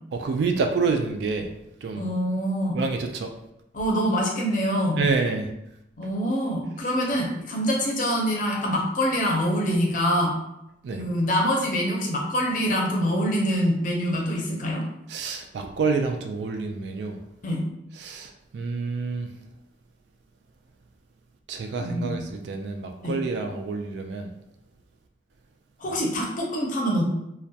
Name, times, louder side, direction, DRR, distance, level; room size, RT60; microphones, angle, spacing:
voice 1, 0.1-1.5 1.8-2.1 2.7-3.3 5.0-5.5 10.8-11.0 15.1-17.2 18.0-19.3 21.5-24.3 25.9-26.0, right 4 dB, 70° right, 4 dB, 0.3 m, -28 dB
voice 2, 2.0-2.8 3.7-5.0 6.0-10.3 10.9-14.9 17.4-17.6 21.8-22.2 23.0-23.2 25.8-27.1, equal, 45° left, -1 dB, 0.5 m, -25 dB
2.2 x 2.1 x 2.7 m, 0.83 s
head